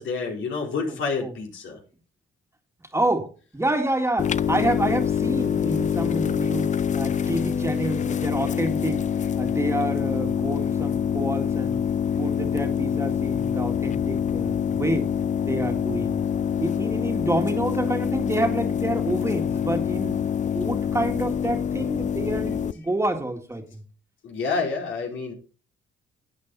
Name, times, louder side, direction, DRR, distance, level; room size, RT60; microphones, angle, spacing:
voice 1, 0.0-1.8 24.2-25.3, left 4 dB, 75° left, 1 dB, 4.4 m, -28 dB
voice 2, 0.8-1.3 2.9-6.7 6.9-9.0 9.4-11.8 12.2-15.1 15.5-16.2 16.6-20.2 20.5-23.8, right 1 dB, 15° right, 5 dB, 2.1 m, -28 dB
sound 1, 4.2-22.7, left 8 dB, 40° left, 0.5 m, -25 dB
12.0 x 8.7 x 4.2 m, 0.37 s
cardioid pair, 90°, 20 cm